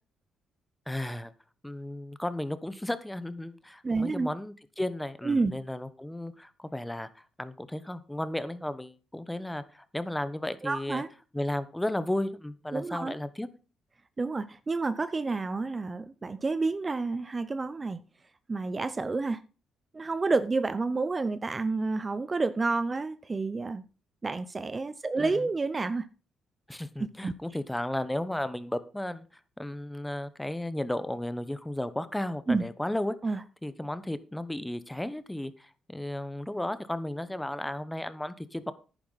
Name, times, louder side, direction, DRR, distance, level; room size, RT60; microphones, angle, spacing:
voice 1, 0.9-1.3 1.6-7.1 7.4-11.0 11.3-13.5 25.2-25.4 26.7-29.3 29.6-33.1 33.6-38.7, left 1 dB, 10° left, 1.0 m, -34 dB
voice 2, 3.8-4.3 5.2-5.5 10.6-11.1 12.7-13.1 14.2-18.0 18.5-19.4 19.9-23.8 24.2-26.1 27.2-27.3 32.5-32.6 33.2-33.4, right 3 dB, 30° right, 0.6 m, -29 dB
10.5 x 9.9 x 4.1 m
cardioid pair, 90°, 0 cm